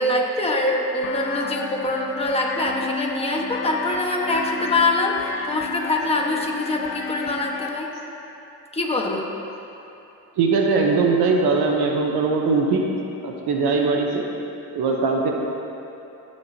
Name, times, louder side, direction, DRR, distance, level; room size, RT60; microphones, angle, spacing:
voice 1, 0.0-7.9 8.7-9.3, left 2 dB, 15° left, -1 dB, 1.3 m, -24 dB
sound 1, 1.0-7.7, left 5 dB, 85° left, 0.7 m, -32 dB
voice 2, 10.4-12.9 13.2-14.3 14.7-15.3, right 4 dB, 80° right, 1 dB, 1.0 m, -20 dB
16.5 x 6.4 x 2.8 m, 2.9 s
cardioid pair, 80°, 38 cm